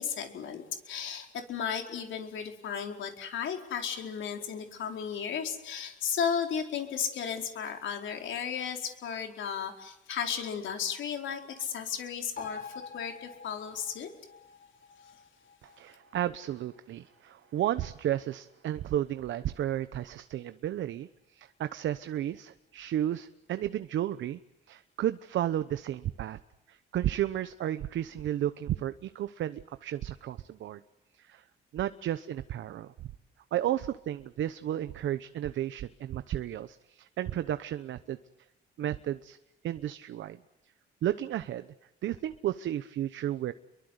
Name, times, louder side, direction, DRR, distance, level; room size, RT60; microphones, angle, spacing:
voice 1, 0.0-14.1, left 7 dB, 75° left, 3 dB, 4.7 m, -34 dB
sound 1, 12.4-19.3 19.7-19.8, left 5 dB, 40° left, 6.2 m, -48 dB
voice 2, 15.6-24.4 24.7-26.4 26.7-30.8 31.1-31.4 31.7-32.9 33.5-38.2 38.8-39.4 39.6-40.4 41.0-41.7 42.0-43.5, right 12 dB, 70° right, 12 dB, 1.0 m, -33 dB
29.5 x 23.0 x 8.1 m, 0.90 s
cardioid pair, 90°, 20 cm